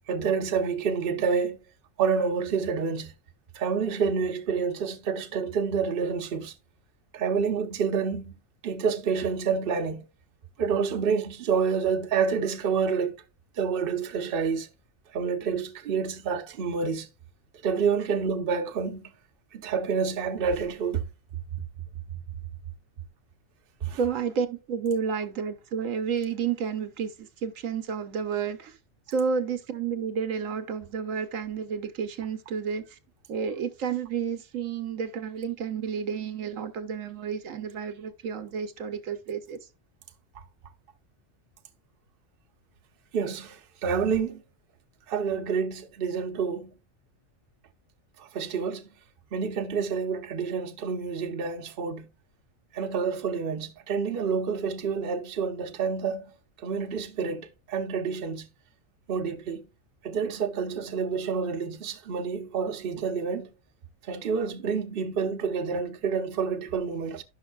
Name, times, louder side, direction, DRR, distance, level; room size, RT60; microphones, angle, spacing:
voice 1, 0.1-1.6 2.0-3.1 3.5-6.5 7.1-8.4 8.6-10.0 10.6-13.1 13.6-14.7 15.1-17.1 17.6-19.0 19.5-21.0 23.8-24.0 43.1-44.4 45.1-46.7 48.3-48.8 49.3-52.1 52.7-56.2 56.6-58.5 59.1-59.6 60.0-63.5 64.1-67.2, right 6 dB, 50° right, 0.9 m, -28 dB
voice 2, 24.0-28.8 29.1-33.0 33.3-39.6, right 6 dB, 75° right, 1.1 m, -31 dB
11.0 x 5.8 x 2.3 m
omnidirectional pair, 1.4 m